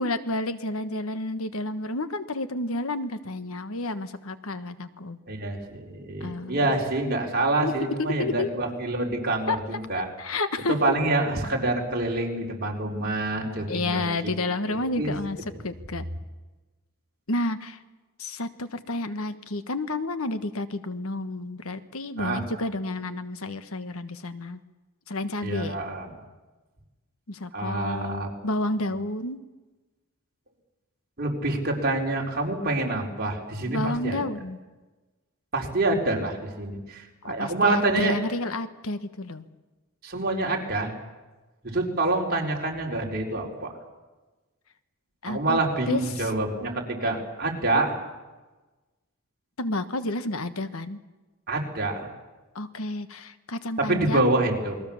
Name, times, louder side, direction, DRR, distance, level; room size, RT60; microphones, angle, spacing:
voice 1, 0.0-5.2 6.2-6.6 7.6-7.7 8.2-8.5 9.5-9.6 10.2-10.8 13.7-15.4 15.6-16.1 17.3-17.8 18.2-24.6 25.1-25.7 27.3-29.4 33.7-34.6 37.2-39.5 45.2-45.6 45.9-46.3 49.6-51.0 52.5-54.3, left 2 dB, 75° left, 11 dB, 1.4 m, -30 dB
voice 2, 5.3-10.1 10.7-14.4 14.7-15.1 22.2-22.4 25.4-26.1 27.5-28.3 28.9-29.0 31.2-34.2 35.5-38.2 40.0-40.9 41.6-43.7 45.3-48.0 51.5-52.1 53.8-54.8, right 2 dB, 45° right, 0 dB, 4.4 m, -27 dB
28.5 x 21.5 x 7.2 m, 1.2 s
head